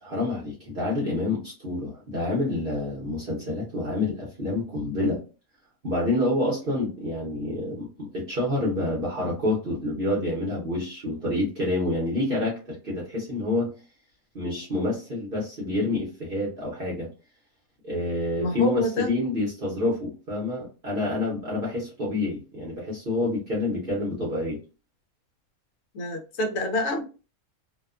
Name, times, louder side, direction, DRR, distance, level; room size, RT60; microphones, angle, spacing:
voice 1, 0.0-5.2 5.8-13.7 14.3-17.1 17.8-24.6, left 2 dB, 45° right, 0.9 m, -28 dB
voice 2, 18.4-19.1 25.9-27.0, left 1 dB, 65° left, 1.0 m, -27 dB
2.8 x 2.2 x 2.4 m
omnidirectional pair, 1.5 m